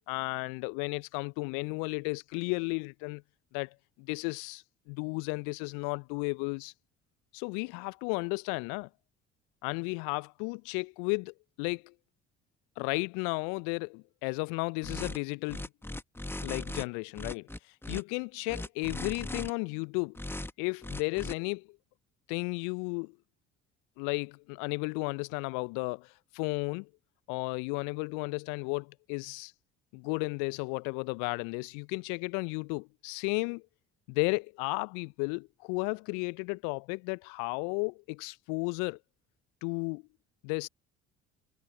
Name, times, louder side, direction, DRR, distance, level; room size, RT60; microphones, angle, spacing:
voice 1, 0.1-3.2 3.5-6.7 7.3-8.9 9.6-11.9 12.8-15.7 16.4-20.2 20.6-21.8 22.3-23.1 24.0-26.9 27.3-29.5 29.9-33.6 34.1-39.0 39.6-40.0 40.4-40.7, left 36 dB, 60° left, 1.0 m, -34 dB
sound 1, 14.8-15.2 15.5-16.8 17.1-18.0 18.5-19.5 20.1-20.5 20.8-21.3, left 1 dB, 5° left, 1.6 m, -38 dB
figure-of-eight pair, 55°, 34 cm